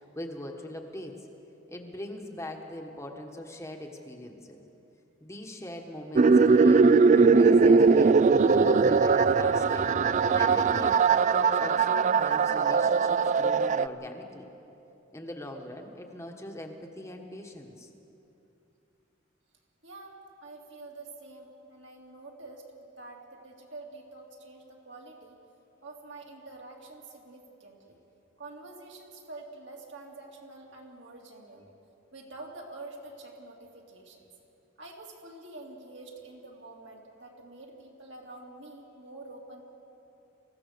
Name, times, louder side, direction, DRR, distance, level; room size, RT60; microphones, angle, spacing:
voice 1, 0.1-1.3 1.7-4.6 5.2-8.2 8.6-9.9 10.3-14.5 15.1-17.9, left 1 dB, 15° left, 2 dB, 1.3 m, -41 dB
sound 1, 6.2-13.9, right 4 dB, 40° right, 0.4 m, -21 dB
voice 2, 19.8-25.4 25.8-28.0 28.4-31.7 32.1-34.2 34.8-39.6, right 2 dB, 65° right, -1 dB, 3.0 m, -47 dB
24.5 x 15.5 x 6.8 m, 2.8 s
head